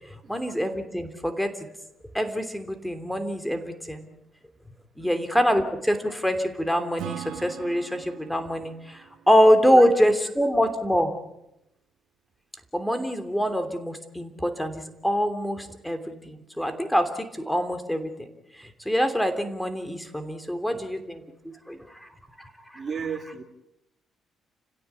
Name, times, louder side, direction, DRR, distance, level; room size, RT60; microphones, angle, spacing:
voice 1, 0.0-1.7 2.1-4.1 5.0-11.1 12.7-18.3 18.6-21.2 21.7-22.1 22.4-22.8, equal, 5° left, 8 dB, 3.0 m, -25 dB
Acoustic guitar / Strum, 7.0-10.6, right 11 dB, 80° right, 1.6 m, -41 dB
voice 2, 22.7-23.4, right 6 dB, 45° right, 5 dB, 2.7 m, -34 dB
30.0 x 16.5 x 8.4 m, 0.88 s
cardioid pair, 90°, 0 cm